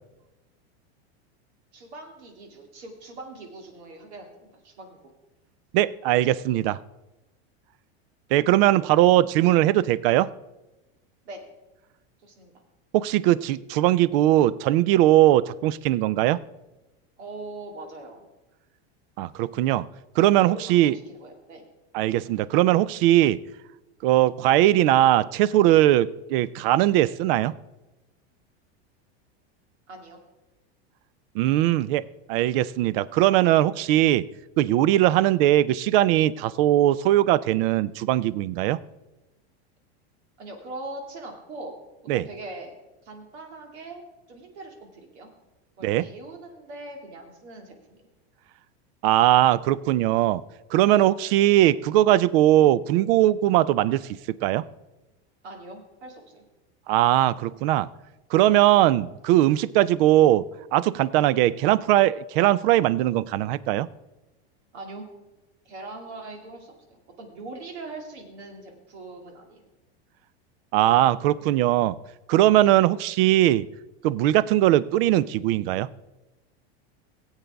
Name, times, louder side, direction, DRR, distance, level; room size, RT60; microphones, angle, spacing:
voice 1, 1.7-5.0 11.2-11.4 12.2-12.5 17.2-18.3 20.3-21.6 29.9-30.2 40.4-41.8 42.1-42.8 43.0-45.3 45.8-48.0 55.4-56.4 64.7-65.1 65.6-69.6, right 2 dB, 85° right, 3 dB, 2.4 m, -41 dB
voice 2, 5.7-6.8 8.3-10.3 12.9-16.4 19.2-19.9 20.2-21.0 21.9-23.4 24.0-27.5 31.3-32.0 32.3-34.2 34.6-38.8 42.1-42.2 45.8-46.1 49.0-50.4 50.7-54.0 54.4-54.6 56.9-57.9 58.3-60.5 60.7-63.9 70.7-72.0 72.3-73.7 74.0-75.9, right 14 dB, 60° right, 20 dB, 0.5 m, -20 dB
17.5 x 8.1 x 3.4 m, 1.0 s
supercardioid pair, 140°, 33 cm